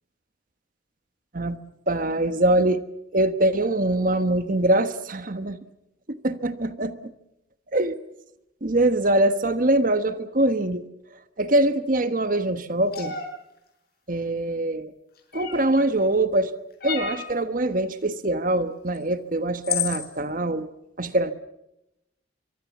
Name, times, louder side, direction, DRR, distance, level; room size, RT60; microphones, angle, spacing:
voice 1, 1.9-2.8 3.1-5.6 6.1-7.0 7.7-7.9 8.6-10.9 11.4-13.1 14.1-14.9 15.3-16.5 16.8-20.7 21.0-21.3, right 1 dB, 45° right, 11 dB, 1.3 m, -23 dB
sound 1, 12.9-13.3 15.3-15.8 16.8-17.3 18.9-19.0 19.6-20.1, left 8 dB, 55° left, 5.9 m, -29 dB
24.0 x 23.5 x 7.2 m, 0.86 s
head